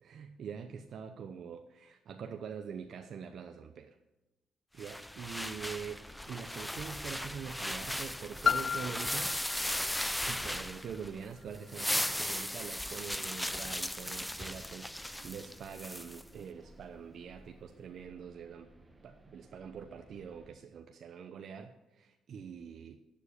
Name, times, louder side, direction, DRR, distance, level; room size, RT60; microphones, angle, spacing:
voice 1, 0.0-3.9 4.7-9.3 10.2-18.7 19.0-23.0, right 7 dB, 60° right, 6 dB, 0.8 m, -44 dB
sound 1, 4.8-11.2 11.5-16.2, left 1 dB, 5° left, 0.6 m, -37 dB
sound 2, 5.8-20.5, right 1 dB, 20° right, 1.7 m, -58 dB
Piano, 8.4-13.9 14.6-14.7, left 6 dB, 45° left, 0.4 m, -37 dB
11.0 x 7.4 x 8.9 m, 1.0 s
cardioid pair, 90°, 0 cm